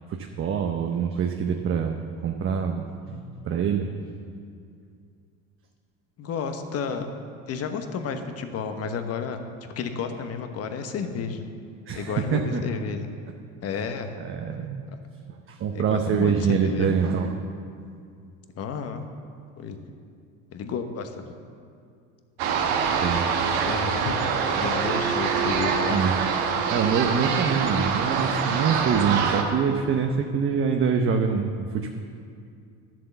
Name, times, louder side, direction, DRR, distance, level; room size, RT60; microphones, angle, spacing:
voice 1, 0.1-3.9 11.9-12.6 14.2-14.8 15.3-17.4 22.9-23.3 25.9-26.1 26.7-31.9, right 6 dB, 40° right, 3 dB, 0.8 m, -25 dB
voice 2, 6.2-7.1 7.5-11.5 11.9-13.1 13.6-14.2 15.7-16.9 18.6-19.0 19.6-19.8 20.5-21.3 23.6-24.2 24.5-26.0, left 5 dB, 45° left, 7 dB, 1.1 m, -31 dB
sound 1, 22.4-29.4, right 6 dB, 80° right, 1.3 m, -25 dB
11.0 x 7.7 x 6.9 m, 2.4 s
supercardioid pair, 105°, 33 cm